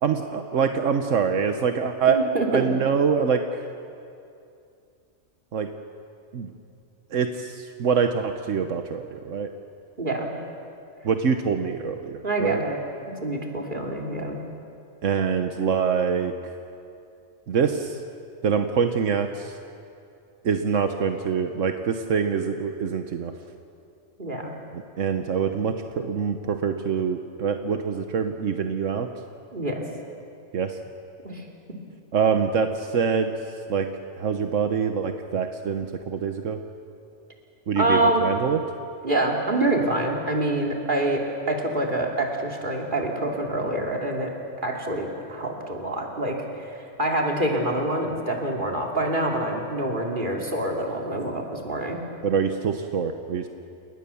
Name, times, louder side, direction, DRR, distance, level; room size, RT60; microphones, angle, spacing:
voice 1, 0.0-2.2 2.5-3.7 5.5-5.7 6.3-6.5 7.1-9.5 11.0-12.6 15.0-16.3 17.5-18.0 18.4-19.6 20.4-23.3 25.0-29.1 30.5-30.8 32.1-33.3 33.7-33.9 34.2-36.6 37.7-38.6 52.2-53.5, right 6 dB, 80° right, 6 dB, 1.4 m, -25 dB
voice 2, 2.1-2.7 10.0-10.3 12.2-12.8 13.2-14.4 24.2-24.5 29.5-29.8 31.2-31.4 37.7-38.3 39.0-44.3 44.6-52.0, right 1 dB, 40° right, 0 dB, 3.1 m, -26 dB
29.5 x 19.5 x 7.1 m, 2.5 s
omnidirectional pair, 1.3 m